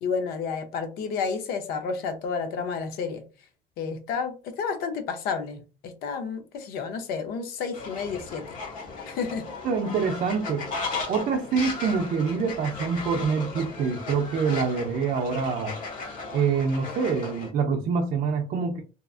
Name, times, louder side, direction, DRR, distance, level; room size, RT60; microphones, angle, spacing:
voice 1, 0.0-3.2 3.8-8.6 9.1-9.5, left 5 dB, 70° left, 8 dB, 0.6 m, -31 dB
Fowl, 7.7-17.5, left 3 dB, 55° left, 1.0 m, -36 dB
voice 2, 9.6-10.7 11.1-15.8 16.3-18.8, right 5 dB, 55° right, 3 dB, 0.4 m, -26 dB
2.8 x 2.3 x 2.4 m, 0.34 s
cardioid pair, 120°, 16 cm